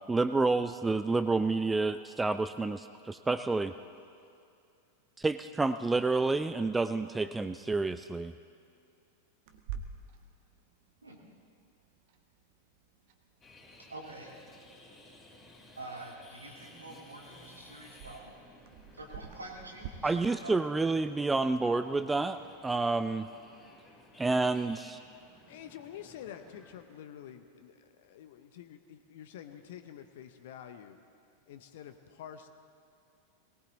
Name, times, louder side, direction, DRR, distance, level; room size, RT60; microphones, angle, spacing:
voice 1, 0.1-3.7 5.2-8.3 20.0-23.3 24.2-25.0, right 3 dB, 10° right, 11 dB, 0.4 m, -29 dB
Clock, 9.5-19.9, right 7 dB, 50° right, 1.2 m, -50 dB
sound 1, 13.4-26.8, left 1 dB, 20° left, 3.3 m, -56 dB
voice 2, 13.8-14.4 15.8-18.4 18.9-20.6, right 2 dB, 80° right, 0 dB, 2.4 m, -46 dB
voice 3, 25.5-31.0 31.5-32.5, left 9 dB, 55° left, 9 dB, 0.9 m, -48 dB
19.5 x 18.5 x 4.1 m, 2.5 s
figure-of-eight pair, 90°, 0 cm